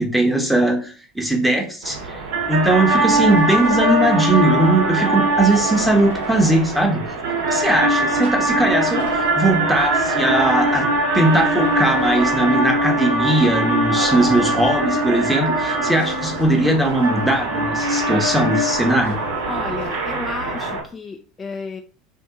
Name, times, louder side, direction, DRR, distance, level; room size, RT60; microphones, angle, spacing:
voice 1, 0.0-2.2 2.5-7.0 7.5-10.9 11.1-19.2, right 1 dB, 5° right, 4 dB, 0.9 m, -19 dB
sound 1, 1.8-20.8, right 1 dB, 70° right, 0.9 m, -21 dB
sound 2, 3.0-4.3 5.5-6.9 8.2-9.9 11.3-12.7 14.0-14.8 15.9-17.4 18.7-20.0, equal, 90° right, 1.1 m, -38 dB
voice 2, 19.5-21.8, left 4 dB, 25° left, 3 dB, 0.4 m, -32 dB
2.7 x 2.6 x 3.6 m, 0.39 s
hypercardioid pair, 80°, 0 cm